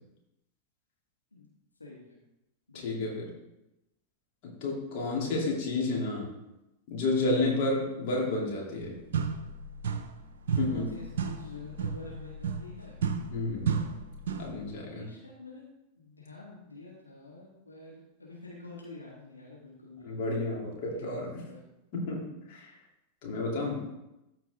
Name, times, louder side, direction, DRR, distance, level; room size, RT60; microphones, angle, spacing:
voice 1, 1.8-2.2 2.7-2.9 10.6-13.0 14.8-15.7 16.0-20.1 20.9-21.6, left 3 dB, 80° left, -4 dB, 1.7 m, -47 dB
voice 2, 2.7-3.3 4.4-6.3 6.9-9.0 10.6-10.9 13.3-13.7 14.4-15.1 20.0-21.4 21.9-22.7 23.2-23.9, left 2 dB, 45° left, -2 dB, 2.8 m, -31 dB
sound 1, 8.7-8.8 9.1-10.2 10.5-14.6, right 6 dB, 60° right, 0.7 m, -33 dB
14.0 x 4.6 x 3.5 m, 0.92 s
figure-of-eight pair, 90°, 0 cm